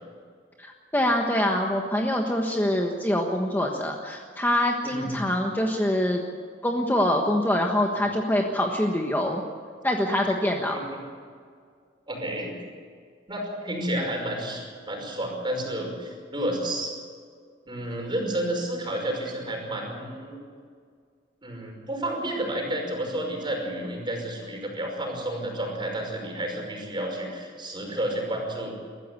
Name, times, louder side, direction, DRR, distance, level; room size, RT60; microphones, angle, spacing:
voice 1, 0.6-6.2 6.6-9.4 9.8-10.8, left 1 dB, 10° left, 1 dB, 1.4 m, -25 dB
voice 2, 4.8-5.2 10.7-10.8 12.1-12.5 13.3-16.9 17.7-20.4 21.4-28.7, right 1 dB, 25° right, 1 dB, 5.5 m, -31 dB
22.0 x 14.5 x 8.5 m, 2.1 s
head